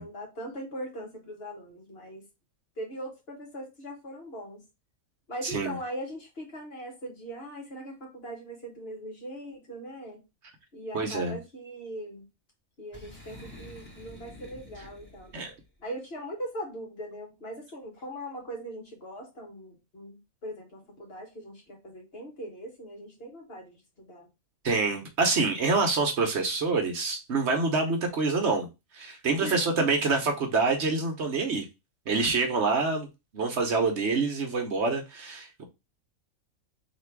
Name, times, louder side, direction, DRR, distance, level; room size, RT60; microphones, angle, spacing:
voice 1, 0.0-2.3 2.8-4.6 5.3-10.2 10.7-12.3 12.8-15.3 15.8-24.3 29.4-29.9, equal, 45° left, 1.5 m, -40 dB
voice 2, 5.4-5.7 10.9-11.4 15.3-15.5 24.6-28.7 28.9-31.7 32.1-33.1 33.3-35.6, right 3 dB, 60° right, 1.1 m, -26 dB
Boom, 12.9-15.6, left 1 dB, 10° left, 1.6 m, -48 dB
3.4 x 2.9 x 4.5 m
omnidirectional pair, 1.4 m